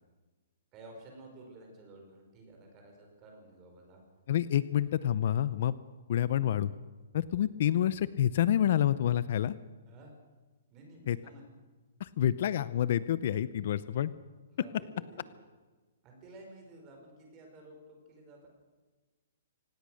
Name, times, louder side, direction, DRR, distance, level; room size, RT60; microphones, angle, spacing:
voice 1, 0.7-4.0 9.9-10.1 10.7-11.4 14.5-15.5 16.0-18.5, right 2 dB, 20° right, 1 dB, 5.3 m, -53 dB
voice 2, 4.3-5.7 6.1-6.7 7.1-9.5 11.1-11.2 12.0-14.1, left 11 dB, 45° left, 17 dB, 0.6 m, -28 dB
25.5 x 18.5 x 6.5 m, 1.3 s
hypercardioid pair, 175°, 0 cm